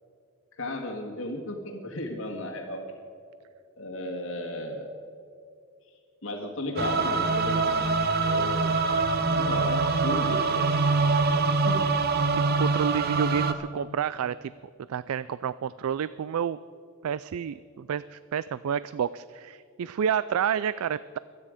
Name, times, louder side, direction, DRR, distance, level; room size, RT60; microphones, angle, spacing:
voice 1, 0.5-2.9 3.8-4.9 6.2-7.9 8.2-8.8 9.4-10.7 11.5-11.9, left 1 dB, 60° left, 1 dB, 1.7 m, -34 dB
sound 1, 6.8-13.5, right 3 dB, 45° right, 0.9 m, -24 dB
voice 2, 12.3-14.5 14.9-16.6 17.0-21.2, right 8 dB, 75° right, 17 dB, 0.3 m, -29 dB
25.0 x 9.6 x 5.1 m, 2.4 s
head